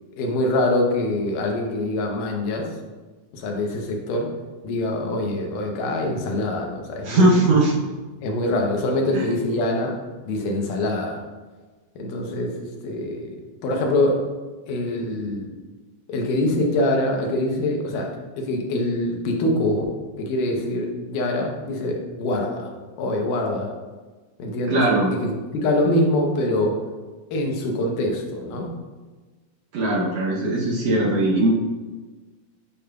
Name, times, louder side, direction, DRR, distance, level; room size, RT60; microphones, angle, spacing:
voice 1, 0.2-2.7 3.3-4.3 4.6-7.5 8.2-10.0 10.3-11.2 12.0-13.4 13.6-14.3 14.7-15.5 16.1-18.1 18.4-22.7 23.0-23.7 24.4-24.8 25.1-25.3 25.6-26.8 27.3-28.7, left 1 dB, 90° left, 1 dB, 2.5 m, -24 dB
voice 2, 7.0-7.7 9.1-9.3 24.7-25.1 29.7-31.5, right 2 dB, 70° right, -4 dB, 1.7 m, -19 dB
8.5 x 5.0 x 2.3 m, 1.3 s
omnidirectional pair, 3.6 m